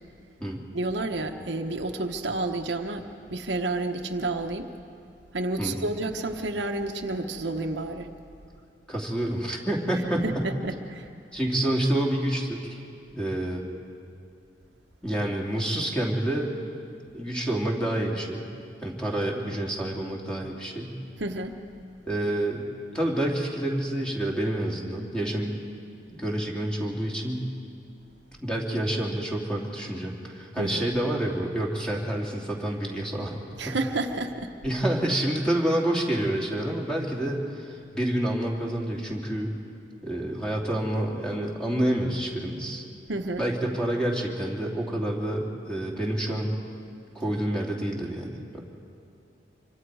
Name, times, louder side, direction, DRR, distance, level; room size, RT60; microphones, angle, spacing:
voice 1, 0.7-4.7 5.3-8.1 10.2-11.1 21.2-21.5 30.6-30.9 33.6-34.5 43.1-43.4, right 2 dB, 75° right, 4 dB, 1.1 m, -30 dB
voice 2, 8.9-10.5 11.3-12.8 13.1-13.6 15.0-16.5 17.1-18.5 18.8-21.0 22.0-22.6 22.9-25.6 26.1-27.4 28.4-33.3 33.7-33.8 34.6-39.5 40.0-42.8 43.4-46.6 47.1-48.6, right 1 dB, 5° left, -2 dB, 2.7 m, -28 dB
26.0 x 24.5 x 4.8 m, 2.5 s
head